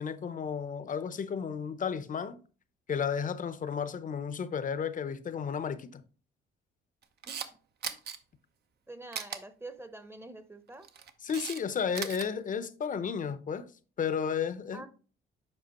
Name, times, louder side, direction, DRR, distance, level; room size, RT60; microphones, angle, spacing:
voice 1, 0.0-2.4 2.9-6.0 11.2-13.7 14.0-14.9, left 7 dB, 40° left, 0.7 m, -33 dB
Camera, 7.0-7.5 7.8-8.2 9.1-9.4 10.7-11.6 11.9-12.3, right 7 dB, 55° right, 0.7 m, -38 dB
voice 2, 8.9-10.9 14.7-14.9, right 2 dB, 10° right, 0.8 m, -46 dB
7.5 x 5.0 x 2.9 m
cardioid pair, 90°, 20 cm